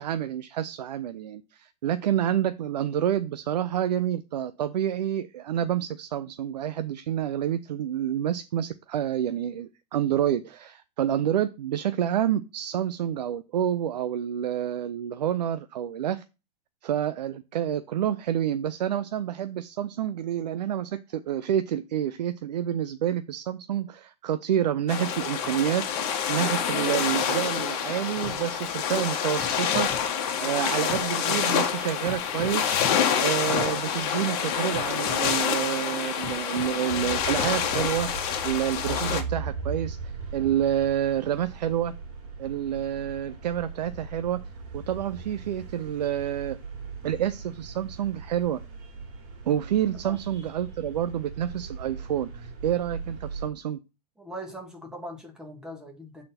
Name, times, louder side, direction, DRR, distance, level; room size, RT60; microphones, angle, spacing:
voice 1, 0.0-16.2 16.8-29.9 30.4-32.7 33.2-41.9 42.4-44.4 44.7-46.6 47.0-48.6 49.5-53.8, right 10 dB, 85° right, 0.6 m, -28 dB
sound 1, 24.9-39.2, left 8 dB, 40° left, 1.4 m, -27 dB
sound 2, 27.6-28.4 28.9-29.0 29.4-30.4 30.9-31.1 31.5-31.7 32.0-32.6 32.9-33.1 33.5-33.7 34.2-34.4 34.7-35.7 36.2-37.0 37.4-37.9, left 4 dB, 15° left, 2.0 m, -41 dB
sound 3, 36.9-53.5, right 4 dB, 50° right, 2.8 m, -39 dB
voice 2, 54.2-56.2, equal, 5° right, 1.7 m, -40 dB
7.8 x 4.2 x 4.2 m
hypercardioid pair, 145°, 21 cm